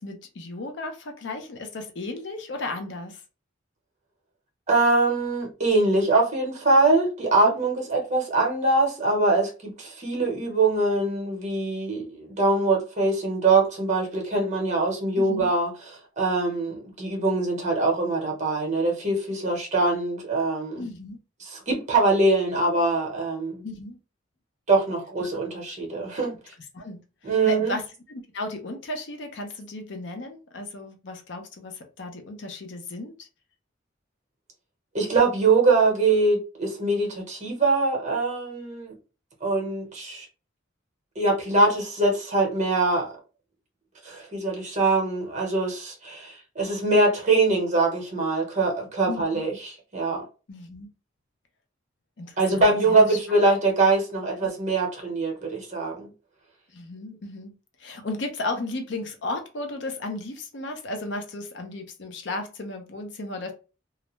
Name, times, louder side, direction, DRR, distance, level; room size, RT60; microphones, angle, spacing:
voice 1, 0.0-3.2 7.4-7.6 15.2-15.5 20.8-21.2 23.6-24.0 25.2-25.3 26.7-33.3 49.1-49.5 50.5-50.9 52.2-53.2 56.7-57.5 57.8-63.5, left 2 dB, 60° left, 0.5 m, -35 dB
voice 2, 4.7-15.7 16.2-20.9 21.4-23.6 24.7-26.4 27.2-27.7 34.9-38.9 39.4-40.2 41.2-43.1 44.0-50.2 52.4-56.1, right 3 dB, 35° right, 0.8 m, -23 dB
2.4 x 2.1 x 3.0 m
head